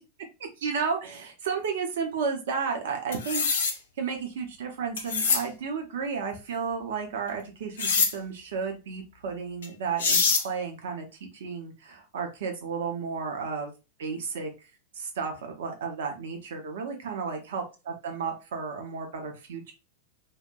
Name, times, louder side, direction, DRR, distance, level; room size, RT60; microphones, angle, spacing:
voice 1, 0.6-3.6 4.0-11.1 11.3-13.7 14.0-14.5 14.9-19.7, right 5 dB, 60° right, 3 dB, 0.5 m, -33 dB
sound 1, 3.1-3.7 5.0-5.4 7.8-8.1 9.6-9.7 10.0-10.4, left 5 dB, 65° left, 0.5 m, -24 dB
2.7 x 2.1 x 2.2 m, 0.29 s
figure-of-eight pair, 90°, 0 cm